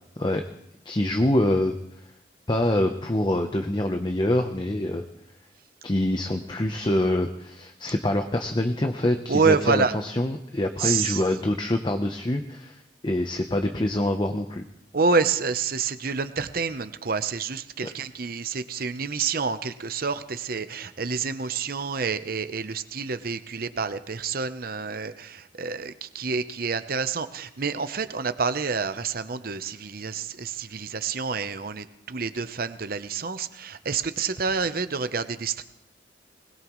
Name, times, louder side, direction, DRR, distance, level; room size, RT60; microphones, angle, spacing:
voice 1, 0.8-1.8 2.5-5.1 5.8-12.8 13.0-14.6, left 1 dB, 25° left, 5 dB, 0.8 m, -25 dB
voice 2, 9.3-9.9 10.8-11.2 14.9-35.6, right 5 dB, 55° right, 11 dB, 0.8 m, -28 dB
21.0 x 20.5 x 3.1 m, 0.77 s
head